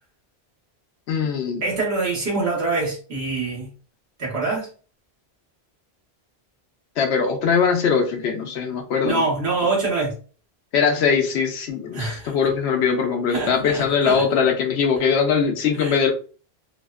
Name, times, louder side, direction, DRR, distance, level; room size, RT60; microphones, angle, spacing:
voice 1, 1.1-1.6 7.0-9.2 10.7-16.1, left 6 dB, 90° left, 0.9 m, -21 dB
voice 2, 1.6-3.7 4.2-4.7 9.0-10.1 11.9-12.3 13.3-14.3 15.8-16.0, right 3 dB, 75° right, 1.2 m, -25 dB
2.8 x 2.0 x 2.2 m
omnidirectional pair, 1.1 m